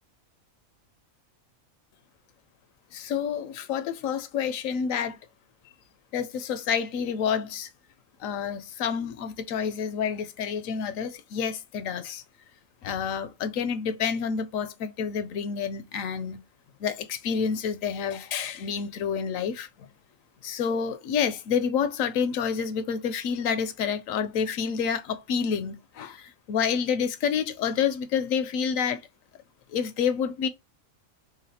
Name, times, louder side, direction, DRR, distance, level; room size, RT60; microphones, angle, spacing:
voice 1, 2.9-5.2 6.1-7.7 8.2-12.2 12.8-16.4 16.8-19.9 20.4-29.0 29.7-30.5, left 7 dB, 80° left, 1.0 m, -28 dB
3.9 x 3.5 x 2.8 m
omnidirectional pair, 1.4 m